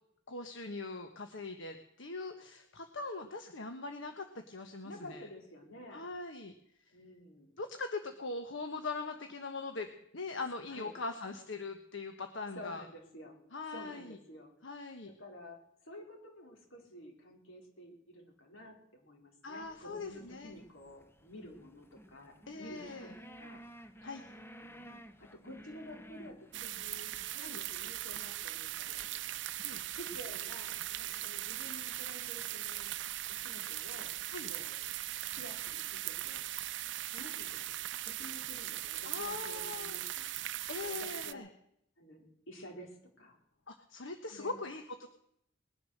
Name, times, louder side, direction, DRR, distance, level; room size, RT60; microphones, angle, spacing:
voice 1, 0.3-5.3 5.9-6.5 7.6-12.8 13.5-14.2 14.6-15.1 19.4-20.6 22.5-23.1 24.0-24.2 27.4-27.6 29.6-29.8 34.3-34.5 39.0-40.0 40.7-41.5 43.7-45.1, left 3 dB, 70° left, 6 dB, 1.2 m, -41 dB
voice 2, 4.8-6.1 6.9-7.5 10.7-10.9 12.5-13.4 13.7-14.5 15.0-23.1 23.4-23.6 24.6-29.2 29.9-32.9 33.3-34.2 34.5-34.7 35.3-36.4 37.1-40.4 40.8-41.4 42.0-43.4 44.3-44.6, left 1 dB, 85° left, 1 dB, 4.5 m, -51 dB
sound 1, 19.6-36.8, right 1 dB, 10° left, 0.9 m, -57 dB
sound 2, 26.5-41.3, right 14 dB, 60° right, 0.5 m, -39 dB
20.5 x 10.5 x 6.6 m, 0.74 s
head